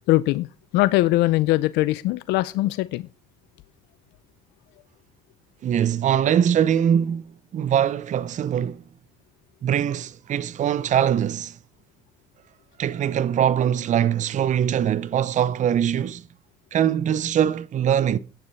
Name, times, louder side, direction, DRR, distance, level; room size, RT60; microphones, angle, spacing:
voice 1, 0.1-0.5 0.7-3.1, left 18 dB, 90° left, 0.5 m, -21 dB
voice 2, 5.6-8.8 9.6-11.6 12.8-16.2 16.7-18.2, right 9 dB, 45° right, 0.6 m, -22 dB
9.7 x 8.6 x 5.6 m
cardioid pair, 110°, 17 cm